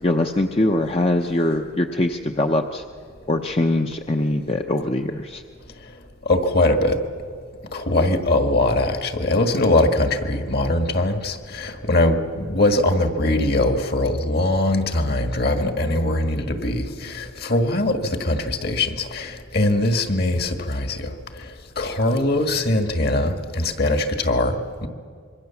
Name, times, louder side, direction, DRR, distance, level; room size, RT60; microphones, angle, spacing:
voice 1, 0.0-2.8 3.3-5.4, left 1 dB, 30° left, 4 dB, 0.7 m, -22 dB
voice 2, 6.3-7.0 7.7-21.5 21.8-24.9, left 1 dB, 50° left, 7 dB, 1.7 m, -21 dB
26.0 x 23.5 x 7.1 m, 2.2 s
head